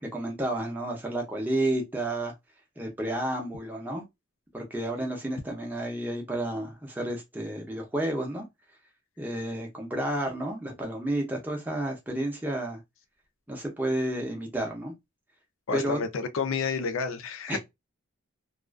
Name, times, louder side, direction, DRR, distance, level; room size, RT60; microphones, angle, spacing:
voice 1, 0.0-2.3 2.8-4.0 4.5-8.4 9.2-12.8 13.5-14.9 15.7-16.0 17.5-17.6, right 1 dB, 10° right, 0.5 m, -31 dB
voice 2, 15.7-17.6, left 5 dB, 75° left, 0.4 m, -30 dB
2.4 x 2.3 x 2.2 m
head